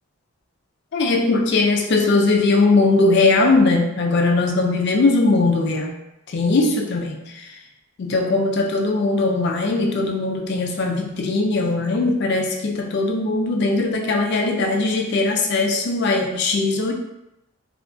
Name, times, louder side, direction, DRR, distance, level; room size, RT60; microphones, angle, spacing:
voice 1, 0.9-5.9 6.3-7.5 8.0-16.9, left 3 dB, 50° left, 3 dB, 0.3 m, -20 dB
2.8 x 2.3 x 2.4 m, 0.89 s
head